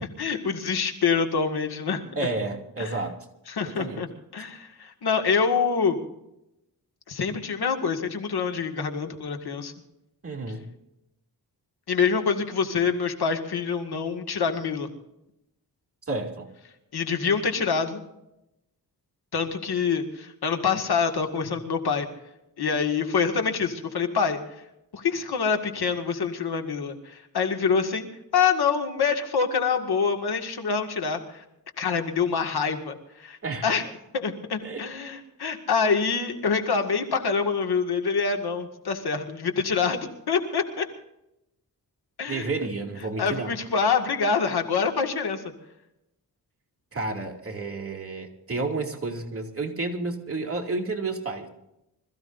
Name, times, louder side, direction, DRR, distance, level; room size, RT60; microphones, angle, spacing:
voice 1, 0.0-2.0 2.8-3.0 3.5-4.1 4.3-6.0 7.1-9.7 11.9-14.9 16.9-18.0 19.3-22.1 22.6-24.4 24.9-28.1 28.3-31.4 31.8-33.9 34.1-40.9 42.2-42.5 43.2-45.4, left 5 dB, 85° left, 5 dB, 2.1 m, -26 dB
voice 2, 2.1-3.2 3.6-4.0 10.2-10.7 16.1-16.5 33.4-33.7 34.6-34.9 42.3-43.6 46.9-51.5, right 3 dB, 35° right, 0 dB, 2.9 m, -31 dB
26.0 x 15.5 x 2.7 m, 0.86 s
wide cardioid pair, 100°, 38 cm